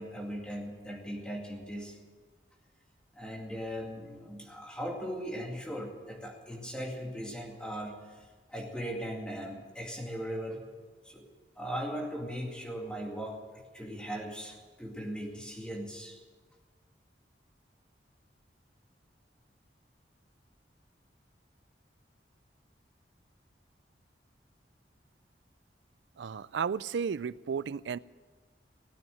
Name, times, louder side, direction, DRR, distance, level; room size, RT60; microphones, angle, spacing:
voice 1, 0.0-2.0 3.1-10.6 11.0-11.3 11.6-16.2, equal, 5° left, 0 dB, 2.3 m, -39 dB
voice 2, 26.2-28.0, right 6 dB, 80° right, 19 dB, 0.4 m, -33 dB
17.5 x 9.2 x 9.1 m, 1.4 s
head